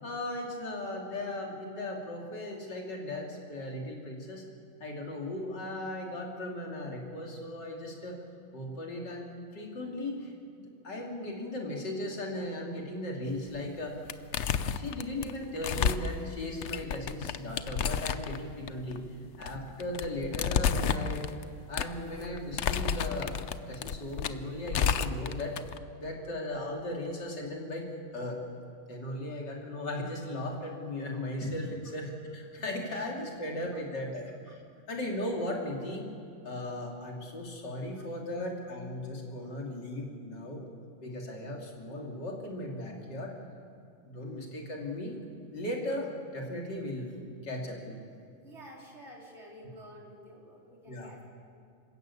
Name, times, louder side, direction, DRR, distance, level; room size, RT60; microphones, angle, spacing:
voice 1, 0.0-4.5 4.8-8.2 8.5-10.3 10.6-14.0 14.7-19.0 19.4-21.3 21.7-23.4 23.7-25.6 26.0-28.4 28.9-34.5 34.9-36.0 36.4-40.6 41.0-43.3 44.0-45.2 45.5-47.1 47.4-48.0 50.9-51.2, left 1 dB, 60° left, -1 dB, 3.7 m, -37 dB
sound 1, 13.5-13.8 14.1-25.8, left 7 dB, 85° left, 0.6 m, -31 dB
voice 2, 48.4-51.2, equal, 30° right, -2 dB, 4.3 m, -50 dB
27.0 x 14.5 x 8.6 m, 2.4 s
omnidirectional pair, 2.2 m